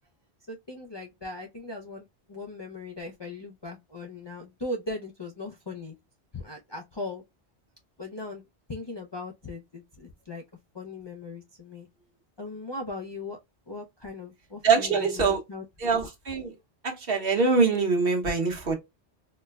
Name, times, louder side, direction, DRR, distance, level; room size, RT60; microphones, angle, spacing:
voice 1, 0.5-5.9 6.3-7.2 8.0-8.4 8.7-10.4 10.7-11.9 12.4-13.4 13.7-15.6, left 2 dB, 40° left, 0.4 m, -38 dB
voice 2, 14.6-15.4 15.8-16.5 16.8-18.8, right 4 dB, 60° right, 1.2 m, -24 dB
4.3 x 2.1 x 2.2 m
omnidirectional pair, 1.1 m